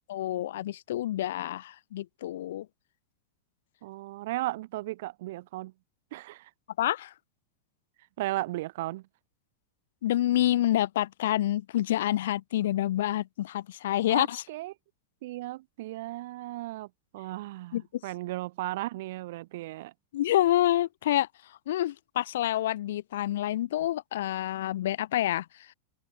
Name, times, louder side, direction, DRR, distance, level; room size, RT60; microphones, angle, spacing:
voice 1, 0.1-2.7 6.8-7.1 10.0-14.4 17.7-17.8 20.1-21.3 21.7-25.5, left 13 dB, 60° left, 0.8 m, -27 dB
voice 2, 3.8-5.7 6.1-6.5 8.2-9.1 14.1-14.7 15.2-19.9, right 17 dB, 55° right, 6.8 m, -36 dB
open air
figure-of-eight pair, 90°, 0 cm